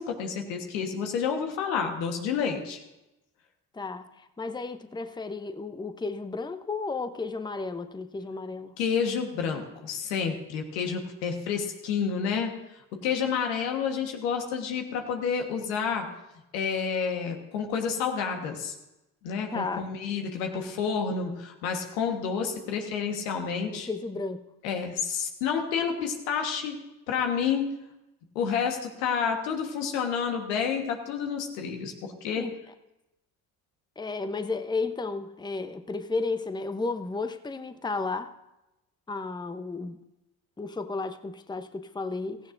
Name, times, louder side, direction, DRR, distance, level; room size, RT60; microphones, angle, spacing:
voice 1, 0.0-2.8 8.8-12.5 13.0-16.1 16.5-18.7 19.2-23.9 24.6-26.8 27.1-27.7 28.3-32.5, left 6 dB, 85° left, 3 dB, 1.5 m, -29 dB
voice 2, 3.7-8.8 19.5-19.9 23.7-24.5 32.4-32.6 34.0-38.3 39.1-40.0 40.6-42.5, left 3 dB, 10° left, 9 dB, 0.7 m, -33 dB
16.0 x 15.0 x 2.6 m, 0.95 s
hypercardioid pair, 55°, 46 cm